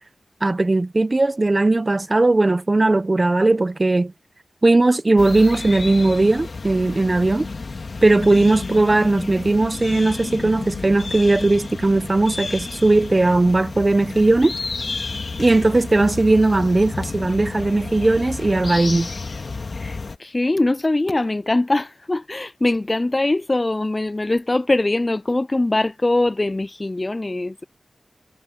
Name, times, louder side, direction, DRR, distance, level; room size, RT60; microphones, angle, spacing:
voice 1, 0.4-4.1 4.6-7.5 8.0-14.5 15.4-19.1, right 2 dB, 40° right, 0.9 m, -18 dB
sound 1, 5.2-20.2, left 3 dB, 60° left, 2.3 m, -31 dB
voice 2, 19.8-27.6, left 2 dB, 35° left, 0.4 m, -22 dB
cardioid pair, 40°, 0 cm